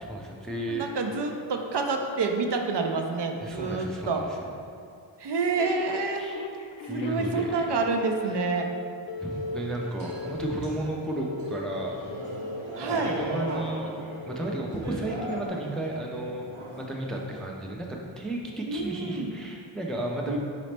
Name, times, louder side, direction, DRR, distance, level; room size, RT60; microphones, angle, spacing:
voice 1, 0.0-0.9 3.4-4.4 6.2-6.4 6.8-7.6 8.3-8.4 9.2-11.9 12.8-13.9 14.3-16.5 16.8-20.4, right 1 dB, ahead, 0 dB, 0.3 m, -33 dB
voice 2, 0.7-4.2 5.2-6.3 6.9-8.7 12.8-13.2 18.7-19.3 20.3-20.4, right 4 dB, 60° right, 3 dB, 0.5 m, -28 dB
Telephone, 5.6-8.0 8.3-8.6 9.1-9.6 10.1-10.6 11.1-11.6 12.1-12.6 13.1-13.6 14.1-14.6 15.1-15.5, left 3 dB, 65° left, 0.5 m, -38 dB
sound 1, 9.3-17.5, right 1 dB, 80° right, 1.0 m, -39 dB
4.0 x 4.0 x 3.3 m, 2.3 s
wide cardioid pair, 80°, 48 cm